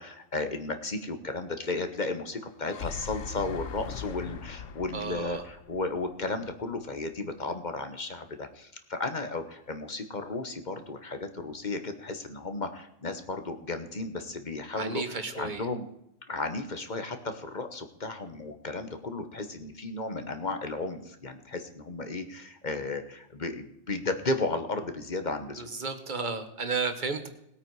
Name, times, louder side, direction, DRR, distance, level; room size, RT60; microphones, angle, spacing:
voice 1, 0.0-15.9 16.3-25.7, left 3 dB, 35° left, 8 dB, 1.2 m, -34 dB
sound 1, 2.4-6.6, left 7 dB, 70° left, 1.1 m, -40 dB
voice 2, 4.9-5.4 14.8-15.7 25.6-27.3, right 4 dB, 40° right, 8 dB, 1.4 m, -33 dB
19.5 x 8.8 x 4.8 m, 0.79 s
omnidirectional pair, 1.3 m